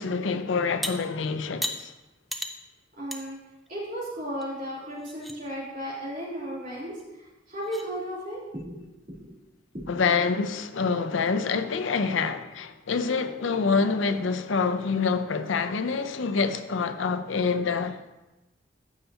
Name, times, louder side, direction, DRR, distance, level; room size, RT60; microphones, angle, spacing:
voice 1, 0.0-1.9 9.9-18.0, left 5 dB, 90° left, 0.6 m, -26 dB
sound 1, 0.8-0.9 1.6-1.8 2.3-2.5 3.1-3.2 3.7-3.8 4.4-4.5 4.9-5.4 7.0-7.1 7.6-7.9, equal, ahead, 0.4 m, -33 dB
voice 2, 3.0-3.4 3.7-8.8 9.2-9.3 9.7-10.0, equal, 45° right, 3.1 m, -35 dB
14.5 x 5.6 x 2.8 m
head